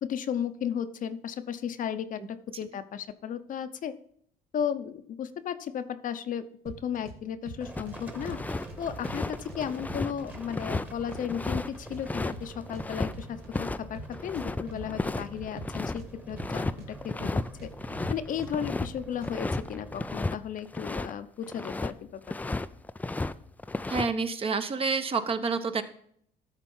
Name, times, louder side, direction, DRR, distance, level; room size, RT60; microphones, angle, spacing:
voice 1, 0.0-3.9 4.5-8.4 8.8-17.7 18.1-22.2, left 8 dB, 50° left, 10 dB, 0.7 m, -34 dB
sound 1, 6.7-7.2 7.5-8.4 8.7-10.4 10.7-11.6 11.9-13.7 13.9-14.9 15.2-16.9 17.2-18.1 18.4-19.6, right 2 dB, 80° right, 1.8 m, -43 dB
Livestock farm animals working animals, 7.6-20.1, right 2 dB, 10° right, 1.2 m, -46 dB
sound 2, 7.8-8.6 8.9-13.1 13.5-13.8 14.0-16.0 16.4-16.8 17.0-17.5 17.7-21.1 21.4-21.9 22.3-23.3 23.6-24.1, left 2 dB, 10° left, 0.3 m, -33 dB
voice 2, 23.9-25.8, right 4 dB, 35° right, 9 dB, 0.9 m, -28 dB
13.0 x 4.4 x 5.5 m, 0.64 s
cardioid pair, 110°, 17 cm